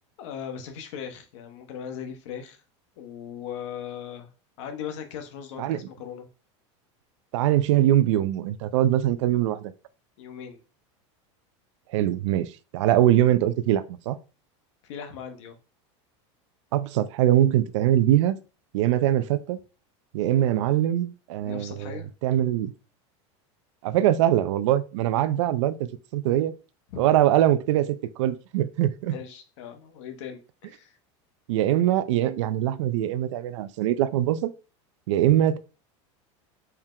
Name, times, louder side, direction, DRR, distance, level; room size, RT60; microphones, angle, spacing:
voice 1, 0.2-2.6 3.0-4.3 4.6-6.3 10.2-10.6 14.8-15.6 21.4-22.1 26.9-27.0 29.1-31.0, left 8 dB, 80° left, 0.9 m, -38 dB
voice 2, 7.3-9.7 11.9-14.2 16.7-18.4 18.7-19.6 20.1-21.9 22.2-22.7 23.8-26.5 27.0-29.1 31.5-34.5 35.1-35.6, right 12 dB, 85° right, 0.4 m, -22 dB
4.4 x 2.2 x 3.7 m
supercardioid pair, 135°, 15 cm